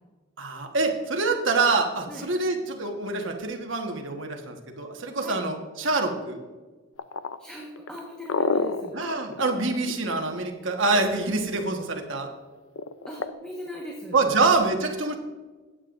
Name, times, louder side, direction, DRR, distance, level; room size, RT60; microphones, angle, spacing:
voice 1, 0.4-6.4 8.9-12.3 14.1-15.2, right 3 dB, 70° right, 3 dB, 1.4 m, -26 dB
sound 1, 7.0-10.7 12.8-13.3, left 4 dB, 75° left, 0.5 m, -28 dB
voice 2, 7.4-9.0 13.0-14.2, left 1 dB, 5° left, -3 dB, 1.4 m, -39 dB
16.0 x 8.7 x 2.6 m, 1.3 s
head